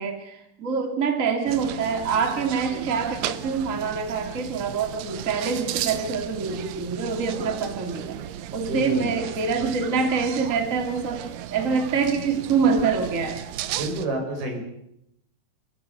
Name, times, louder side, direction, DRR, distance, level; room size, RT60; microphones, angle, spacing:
voice 1, 0.0-8.2 8.5-13.4, right 5 dB, 25° right, 6 dB, 2.4 m, -25 dB
sound 1, 1.5-14.1, right 11 dB, 90° right, 3.0 m, -35 dB
voice 2, 8.7-9.1 13.8-14.6, right 1 dB, 75° right, 4 dB, 6.9 m, -28 dB
29.5 x 16.0 x 6.8 m, 0.79 s
omnidirectional pair, 4.4 m